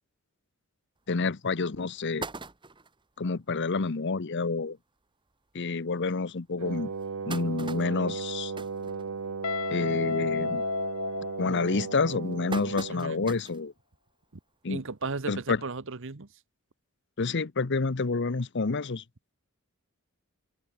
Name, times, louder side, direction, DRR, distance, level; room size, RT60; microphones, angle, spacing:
voice 1, 1.1-2.3 3.2-4.8 5.5-6.9 7.3-8.5 9.7-10.6 11.4-13.7 14.6-14.8 15.3-15.6 17.2-19.0, left 4 dB, 55° left, 0.8 m, -28 dB
sound 1, 1.1-1.2 1.6-1.7 2.0-3.0 3.6-3.7 4.0-4.1 4.4-4.6 5.3-5.4 5.9-6.0 6.7-9.6 9.9-10.3 10.6-11.0 11.6-13.7 14.1-14.2 15.4-15.5, right 3 dB, 20° right, 1.6 m, -42 dB
Wind instrument woodwind instrument, 6.6-13.2, right 5 dB, 85° right, 0.7 m, -36 dB
Guitar, 9.4-12.3, left 4 dB, 85° left, 1.9 m, -33 dB
voice 2, 12.9-13.3 14.7-16.3, right 4 dB, 60° right, 1.1 m, -35 dB
head